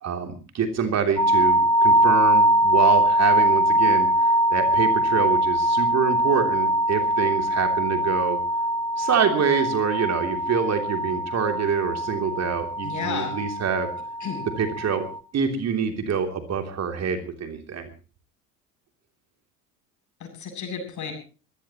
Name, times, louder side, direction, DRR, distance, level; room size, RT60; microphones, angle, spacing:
voice 1, 0.0-8.4 9.0-13.9 14.4-15.1 15.3-17.9, right 6 dB, 35° right, 5 dB, 3.1 m, -26 dB
sound 1, 1.2-15.2, right 1 dB, 10° left, 2.3 m, -22 dB
voice 2, 12.8-13.4 14.2-14.4 20.2-21.1, left 6 dB, 40° left, 5 dB, 7.9 m, -32 dB
24.0 x 17.0 x 3.0 m, 0.36 s
figure-of-eight pair, 70°, 45 cm